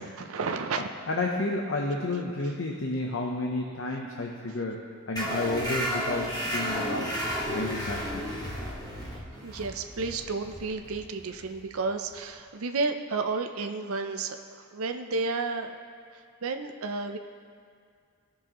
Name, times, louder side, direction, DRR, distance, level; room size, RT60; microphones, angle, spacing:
voice 1, 0.0-0.9 9.4-15.8 16.1-17.2, right 4 dB, 75° right, 6 dB, 0.6 m, -32 dB
voice 2, 0.8-4.8 5.1-7.1 7.5-8.4, left 2 dB, 60° left, 0 dB, 0.8 m, -31 dB
sound 1, 5.2-12.3, equal, 20° left, 1.3 m, -33 dB
18.5 x 6.4 x 3.0 m, 2.2 s
head